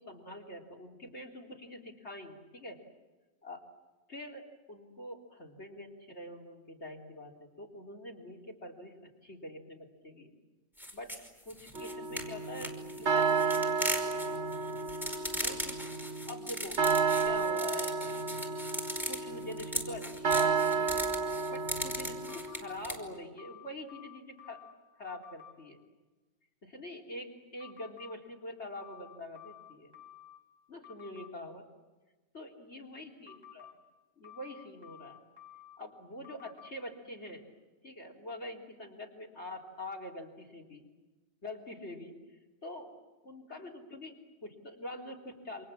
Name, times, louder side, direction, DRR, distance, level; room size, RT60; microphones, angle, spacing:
voice 1, 0.0-2.8 3.4-3.6 4.1-10.3 10.9-11.1 11.5-14.6 15.3-15.8 16.2-16.8 17.2-18.2 19.1-21.1 21.5-24.6 25.0-25.8 26.6-29.9 30.7-31.6 32.3-33.7 34.2-35.2 35.8-37.4 37.8-40.8 41.4-43.0 43.2-45.7, left 1 dB, 55° left, 3 dB, 3.9 m, -45 dB
sound 1, 10.8-23.0, equal, ahead, 5.3 m, -38 dB
sound 2, 11.8-22.9, right 5 dB, 55° right, 1.5 m, -32 dB
sound 3, 22.3-22.8 23.4-24.7 25.1-25.5 27.6-28.1 28.7-30.4 30.8-31.3 33.3-33.7 34.2-35.8 36.2-36.7, left 11 dB, 15° right, 4.6 m, -52 dB
29.0 x 27.5 x 7.5 m, 1.2 s
omnidirectional pair, 1.4 m